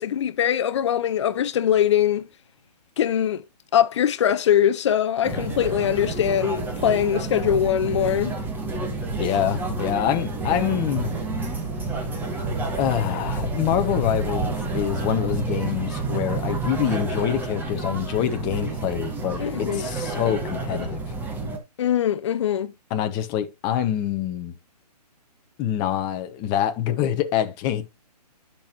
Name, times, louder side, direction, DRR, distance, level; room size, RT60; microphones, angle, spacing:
voice 1, 0.0-2.3 3.0-3.4 3.7-8.3 19.4-19.9 21.8-22.7, left 10 dB, 45° left, 0.7 m, -22 dB
sound 1, 5.2-21.6, right 3 dB, 10° right, 1.6 m, -29 dB
voice 2, 9.2-11.1 12.8-21.1 22.9-24.5 25.6-27.9, left 10 dB, 20° left, 1.0 m, -25 dB
10.0 x 6.2 x 3.0 m
hypercardioid pair, 145°, 21 cm